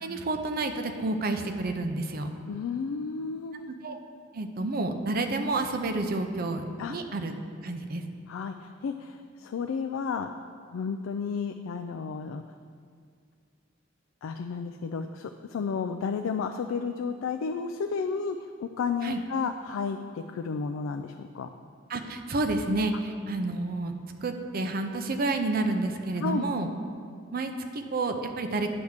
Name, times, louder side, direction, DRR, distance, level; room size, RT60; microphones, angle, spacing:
voice 1, 0.0-2.3 3.7-4.0 4.3-7.3 7.6-8.0 19.0-19.2 21.9-23.9 24.2-26.7 27.3-28.7, right 2 dB, 45° right, 6 dB, 0.5 m, -30 dB
voice 2, 2.5-3.7 6.8-7.0 8.3-10.3 10.7-12.4 14.2-21.5 26.2-26.5, left 5 dB, 85° left, 6 dB, 0.3 m, -32 dB
9.7 x 3.5 x 6.4 m, 2.1 s
head